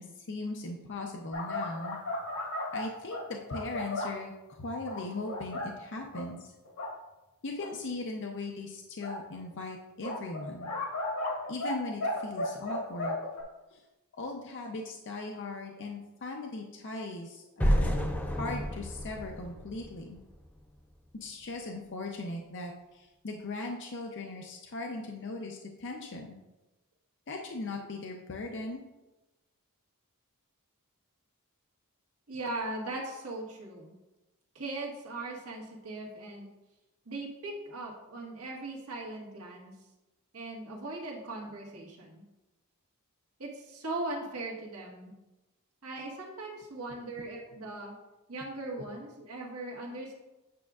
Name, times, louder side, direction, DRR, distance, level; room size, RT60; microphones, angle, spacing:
voice 1, 0.0-2.0 2.7-6.5 7.4-10.7 11.5-13.2 13.7-13.8 14.1-20.2 21.1-26.4 27.3-28.8, left 2 dB, 55° left, 1 dB, 0.6 m, -39 dB
sound 1, 1.3-4.2 4.8-5.7 6.1-6.3 6.7-6.9 7.6-7.7 9.0-9.2 10.0-11.8 12.0-13.4, left 1 dB, 80° left, 1.6 m, -34 dB
sound 2, 17.6-20.6, equal, 5° left, 0.5 m, -30 dB
voice 2, 32.3-33.9 34.5-36.5 37.0-39.7 40.3-42.2 43.4-45.1 45.8-47.9 48.3-50.1, right 2 dB, 75° right, -2 dB, 1.5 m, -39 dB
8.6 x 6.1 x 2.4 m, 1.0 s
head